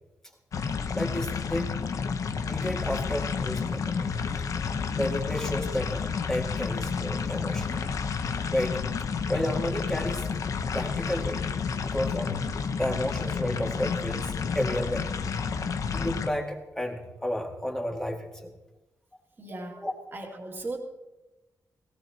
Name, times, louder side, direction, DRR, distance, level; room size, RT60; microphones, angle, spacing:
sound 1, 0.5-16.3, left 5 dB, 65° left, 0.8 m, -30 dB
voice 1, 0.9-1.7 2.4-4.1 4.9-7.8 8.5-8.8 9.3-10.3 10.7-11.4 11.8-12.4 12.8-15.1 15.9-18.5 19.8-19.9, left 1 dB, 10° left, 0 dB, 2.0 m, -31 dB
voice 2, 19.4-19.8 20.1-20.8, right 2 dB, 35° right, 1 dB, 2.3 m, -37 dB
18.0 x 17.0 x 2.9 m, 1.0 s
wide cardioid pair, 140°, 6 cm